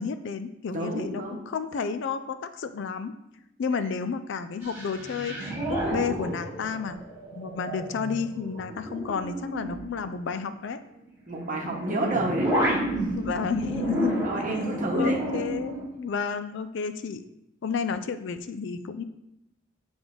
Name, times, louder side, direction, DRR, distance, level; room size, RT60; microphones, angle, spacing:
voice 1, 0.0-3.1 3.6-7.0 7.3-10.8 13.2-14.4 15.0-17.2 17.6-19.0, left 5 dB, 60° left, 11 dB, 0.4 m, -31 dB
voice 2, 0.7-1.4 11.3-12.5 14.2-15.5, right 1 dB, 40° right, 0 dB, 1.2 m, -30 dB
sound 1, 4.6-10.4 11.3-15.9, right 1 dB, 10° right, 1.9 m, -31 dB
8.8 x 3.5 x 3.7 m, 0.86 s
head